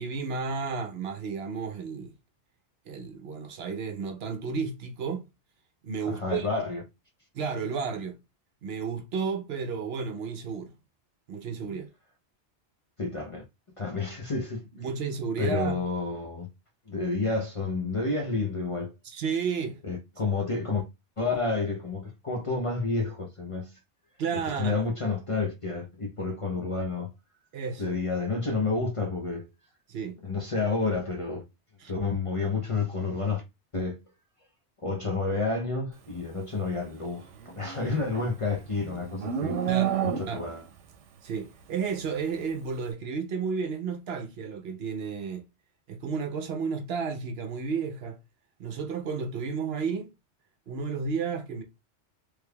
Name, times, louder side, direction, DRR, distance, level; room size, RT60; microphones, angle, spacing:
voice 1, 0.0-2.1 2.9-5.3 5.8-6.5 7.3-8.1 8.6-10.7 11.3-11.9 14.7-15.8 19.0-19.8 24.2-24.8 27.5-28.0 29.9-30.1 31.8-31.9 39.7-40.0 40.3-40.5 41.2-45.4 45.9-48.2 48.6-50.1 50.7-51.6, right 5 dB, 65° right, 0.8 m, -32 dB
voice 2, 6.1-6.8 13.0-13.4 13.8-14.6 15.4-16.5 16.9-18.9 19.8-20.8 21.2-23.8 24.6-27.1 27.8-29.5 30.2-31.4 31.9-33.4 33.7-34.0 34.8-39.6 40.0-40.6, left 3 dB, 35° left, 0.6 m, -30 dB
Livestock farm animals working animals, 37.4-40.7, right 9 dB, 85° right, 0.9 m, -30 dB
3.3 x 3.3 x 2.2 m
omnidirectional pair, 1.2 m